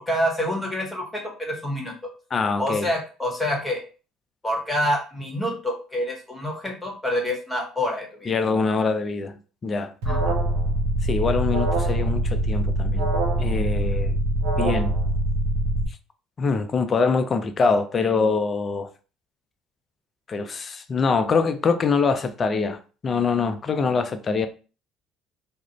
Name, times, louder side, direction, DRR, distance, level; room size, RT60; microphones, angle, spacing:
voice 1, 0.1-1.9 2.6-3.8 4.4-8.4 10.0-10.4, equal, 10° left, 1.2 m, -27 dB
voice 2, 2.3-2.9 8.3-9.4 9.6-9.9 11.0-13.1 13.4-14.2 14.6-14.9 16.4-18.9 20.3-24.5, left 4 dB, 40° left, 0.4 m, -24 dB
Alarm, 10.0-15.8, right 1 dB, 75° right, 0.7 m, -23 dB
2.4 x 2.0 x 3.0 m
hypercardioid pair, 60°, 0 cm